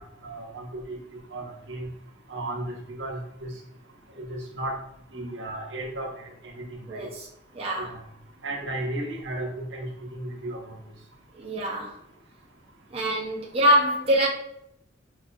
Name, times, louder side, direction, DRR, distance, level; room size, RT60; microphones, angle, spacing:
voice 1, 0.2-1.0 1.3-1.9 2.3-3.5 4.1-4.8 5.1-6.3 6.5-6.6 6.9-7.1 7.8-8.0 8.4-10.8, right 1 dB, 75° right, 0 dB, 0.7 m, -34 dB
voice 2, 6.9-7.3 7.5-8.0 11.4-12.0 12.9-14.3, equal, 30° right, -2 dB, 0.5 m, -24 dB
4.6 x 2.3 x 2.5 m, 0.75 s
head